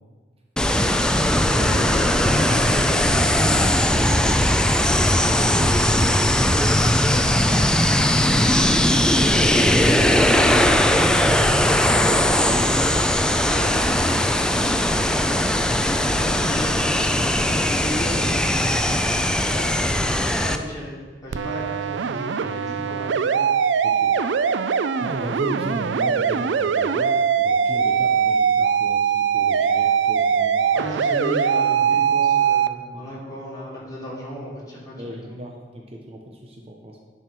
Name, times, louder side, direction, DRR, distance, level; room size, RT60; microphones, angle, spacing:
sound 1, 0.6-20.6, left 1 dB, 5° left, 0.4 m, -19 dB
voice 1, 1.4-4.2 6.4-7.6 13.5-14.1 16.2-20.9 21.2-23.4 30.7-35.4, equal, 20° left, -6 dB, 3.0 m, -34 dB
voice 2, 5.2-5.8 8.2-12.9 14.5-14.8 23.8-24.1 25.0-30.7 32.7-33.0 35.0-37.0, equal, 35° right, 1 dB, 0.9 m, -36 dB
sound 2, 21.3-32.7, right 7 dB, 85° right, 0.4 m, -21 dB
10.5 x 4.9 x 6.0 m, 1.5 s
head